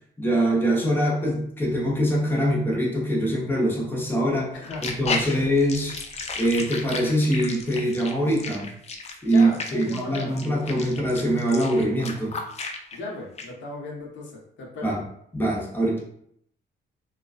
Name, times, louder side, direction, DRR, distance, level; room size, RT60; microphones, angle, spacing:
voice 1, 0.2-4.6 4.8-6.0 6.4-8.7 9.2-12.3 14.8-15.0 15.3-16.0, right 1 dB, 10° left, -3 dB, 0.7 m, -23 dB
sound 1, 4.6-13.0 13.4-13.5, left 4 dB, 35° left, 0.4 m, -33 dB
voice 2, 9.2-10.4 12.9-14.9, left 1 dB, 65° left, -1 dB, 0.7 m, -36 dB
2.3 x 2.2 x 2.4 m, 0.68 s
cardioid pair, 90°, 20 cm